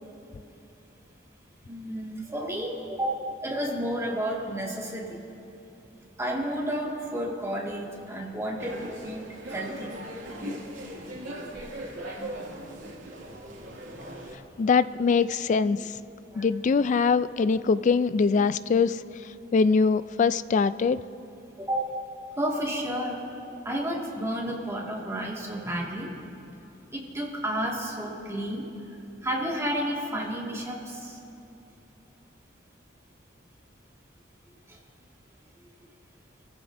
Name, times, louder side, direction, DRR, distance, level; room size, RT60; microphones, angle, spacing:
voice 1, 1.7-5.2 6.2-9.9 10.4-10.6 12.1-12.3 16.3-16.5 21.6-21.9 22.4-23.2 23.7-26.1 26.9-28.7 29.2-31.2, equal, 15° right, -3 dB, 2.0 m, -31 dB
sound 1, 8.6-14.4, right 1 dB, 90° right, 2.2 m, -39 dB
voice 2, 14.6-15.8 16.4-19.0 19.5-21.0, left 5 dB, 40° left, 15 dB, 0.3 m, -22 dB
25.5 x 14.5 x 2.6 m, 2.8 s
head